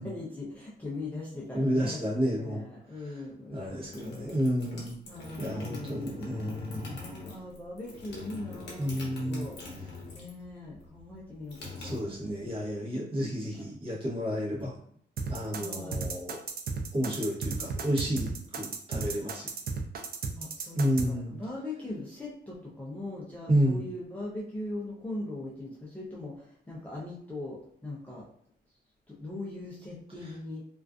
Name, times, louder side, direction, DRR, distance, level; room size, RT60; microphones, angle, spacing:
voice 1, 0.0-2.0 2.3-4.3 5.1-8.9 9.3-12.1 13.0-13.6 15.5-16.0 20.4-28.2 29.1-30.6, left 2 dB, 10° left, -6 dB, 0.5 m, -40 dB
voice 2, 1.5-2.6 3.5-4.9 5.4-7.0 8.8-9.5 11.8-14.7 15.3-16.4 16.9-19.5 20.7-21.3 23.5-23.8, equal, 30° right, -5 dB, 0.9 m, -30 dB
sound 1, 3.7-10.5 10.7-12.6, left 3 dB, 70° left, 0.9 m, -43 dB
sound 2, 15.2-21.1, right 4 dB, 55° right, 0.4 m, -33 dB
2.4 x 2.3 x 2.3 m, 0.63 s
cardioid pair, 130°, 19 cm